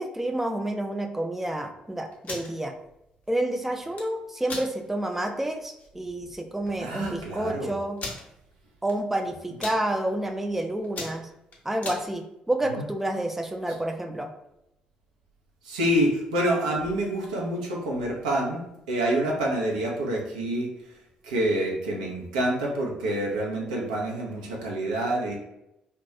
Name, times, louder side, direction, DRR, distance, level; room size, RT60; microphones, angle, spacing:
voice 1, 0.0-2.7 3.3-8.0 8.8-11.3 11.6-14.3, right 1 dB, 5° right, 4 dB, 0.3 m, -29 dB
sound 1, 2.1-2.5 3.7-4.1 4.5-4.7 5.2-5.3 5.6-5.9 6.7-6.8 6.9-7.0 8.0-8.2 8.9-9.2 9.4-9.8 10.4-10.5 10.8-12.0, left 3 dB, 45° left, 0.7 m, -36 dB
voice 2, 6.8-7.7 12.7-12.8 15.6-18.6 18.9-20.7 21.2-25.3, right 1 dB, 80° right, -2 dB, 0.5 m, -27 dB
2.3 x 2.2 x 2.8 m, 0.84 s
figure-of-eight pair, 45°, 4 cm